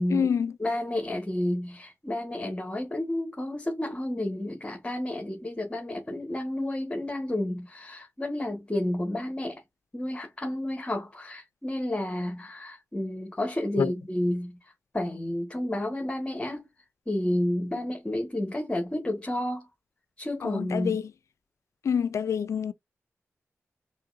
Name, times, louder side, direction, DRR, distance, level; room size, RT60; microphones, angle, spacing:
voice 1, 0.1-0.5 13.8-13.9 20.4-21.1 21.8-22.7, left 7 dB, 80° left, 0.3 m, -27 dB
voice 2, 0.6-9.6 9.9-14.6 14.9-16.7 17.1-19.7 20.2-21.0, left 1 dB, 25° left, 1.5 m, -31 dB
4.1 x 3.7 x 2.6 m
cardioid pair, 60°, 5 cm